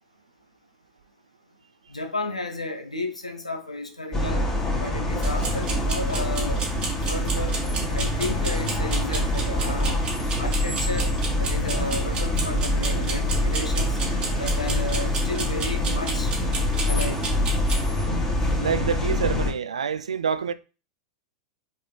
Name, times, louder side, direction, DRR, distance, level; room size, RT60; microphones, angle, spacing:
voice 1, 1.9-4.4 4.8-6.6 7.0-7.6 7.9-10.0 10.4-11.1 11.4-14.0 14.4-16.3 16.9-17.2, left 2 dB, 85° left, 1.4 m, -33 dB
sound 1, 4.1-19.5, left 1 dB, 15° left, 2.9 m, -25 dB
sound 2, 5.2-17.9, right 5 dB, 30° right, 2.5 m, -32 dB
voice 2, 18.6-20.5, right 6 dB, 75° right, 0.5 m, -27 dB
5.5 x 5.0 x 4.3 m
figure-of-eight pair, 95°, 3 cm